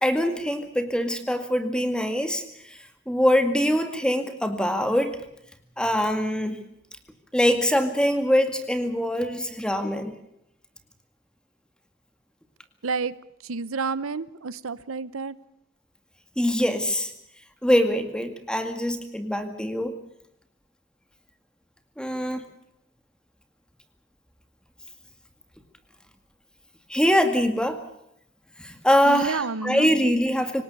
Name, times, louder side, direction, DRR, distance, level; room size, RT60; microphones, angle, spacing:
voice 1, 0.0-2.8 3.1-5.2 5.8-6.6 7.3-10.2 16.4-17.1 17.6-19.9 22.0-22.4 26.9-27.8 28.6-30.6, equal, 5° left, 7 dB, 2.1 m, -23 dB
voice 2, 12.8-13.1 13.4-15.4 29.0-29.9, right 4 dB, 80° right, 17 dB, 0.8 m, -30 dB
26.0 x 18.5 x 6.7 m, 0.77 s
head